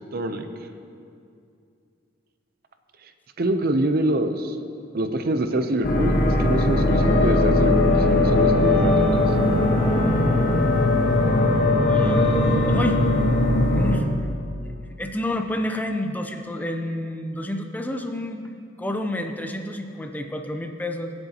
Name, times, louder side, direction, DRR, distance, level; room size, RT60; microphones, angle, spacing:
voice 1, 0.1-0.5 3.4-4.6 4.9-9.2, right 1 dB, 55° right, 8 dB, 0.6 m, -25 dB
sound 1, 5.8-14.0, left 2 dB, 50° left, 1.3 m, -19 dB
voice 2, 11.8-12.2 12.7-13.0 13.7-14.1 15.0-18.5 18.8-21.1, left 1 dB, 10° left, 5 dB, 0.5 m, -29 dB
23.5 x 7.8 x 2.9 m, 2.5 s
head